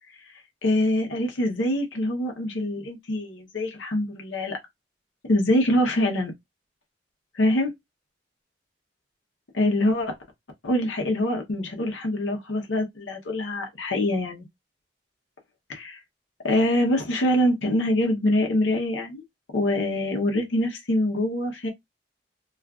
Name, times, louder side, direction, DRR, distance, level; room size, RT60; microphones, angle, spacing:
voice 1, 0.6-4.6 5.3-6.3 7.3-7.7 9.5-10.2 10.6-14.4 15.7-16.0 16.4-19.2 19.5-21.7, left 1 dB, 80° left, 0.8 m, -24 dB
2.5 x 2.4 x 3.4 m
head